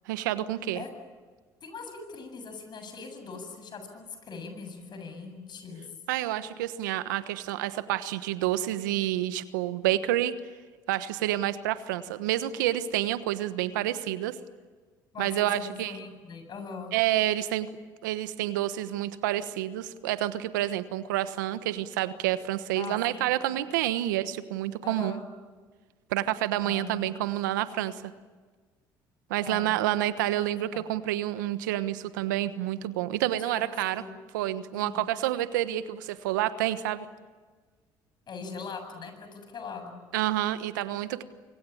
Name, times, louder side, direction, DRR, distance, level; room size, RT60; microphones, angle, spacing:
voice 1, 0.1-0.8 6.1-10.3 10.9-14.3 15.2-16.0 16.9-17.7 18.0-25.2 26.1-28.0 29.3-34.0 34.3-37.1 40.1-41.2, right 13 dB, 85° right, 13 dB, 1.2 m, -29 dB
voice 2, 1.6-5.8 15.1-16.9 22.7-23.2 24.8-25.2 26.6-27.1 29.4-29.7 30.3-30.5 30.7-30.8 33.5-34.1 34.7-35.0 38.3-40.0, left 4 dB, 50° left, 7 dB, 7.6 m, -41 dB
25.0 x 25.0 x 8.6 m, 1.4 s
hypercardioid pair, 65°, 10 cm